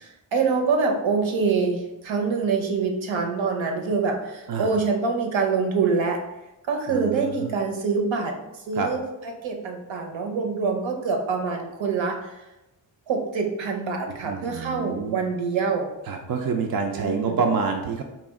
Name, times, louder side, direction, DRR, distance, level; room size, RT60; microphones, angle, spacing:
voice 1, 0.0-6.2 6.7-8.4 8.7-9.0 9.4-12.4 13.1-15.9 16.9-17.4, right 4 dB, 75° right, 2 dB, 0.8 m, -25 dB
voice 2, 6.9-7.5 8.7-8.9 14.2-15.2 16.1-18.0, right 5 dB, 50° right, 3 dB, 0.4 m, -27 dB
4.2 x 2.4 x 3.5 m, 0.95 s
wide cardioid pair, 90°, 46 cm